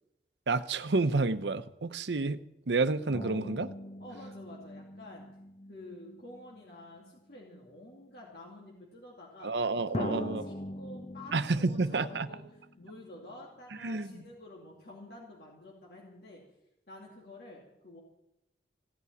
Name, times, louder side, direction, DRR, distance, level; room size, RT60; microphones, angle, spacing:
voice 1, 0.5-2.4 2.7-3.7 9.4-10.4 11.3-12.3 13.8-14.1, right 3 dB, 80° right, 12 dB, 0.7 m, -29 dB
sound 1, 3.1-7.1 7.9-8.0 9.9-13.3 13.6-13.7, left 1 dB, 35° left, 0.7 m, -42 dB
voice 2, 4.0-5.3 5.7-16.4 16.9-18.0, left 1 dB, 60° left, -3 dB, 2.7 m, -49 dB
16.5 x 8.5 x 9.3 m, 0.86 s
head